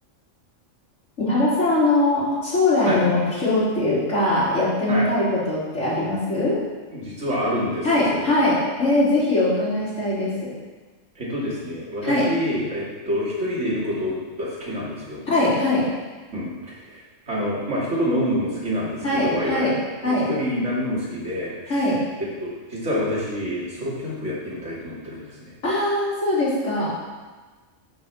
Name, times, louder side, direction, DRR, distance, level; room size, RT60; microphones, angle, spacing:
voice 1, 1.2-6.6 7.8-10.5 12.0-12.2 15.3-15.8 19.0-19.7 20.0-20.3 21.7-22.1 25.6-26.9, left 2 dB, 75° left, -8 dB, 4.1 m, -21 dB
voice 2, 6.9-8.3 11.2-15.2 16.3-19.7 20.0-21.9 22.4-25.5, equal, 70° right, -6 dB, 3.0 m, -27 dB
9.3 x 6.1 x 6.9 m, 1.3 s
omnidirectional pair, 1.3 m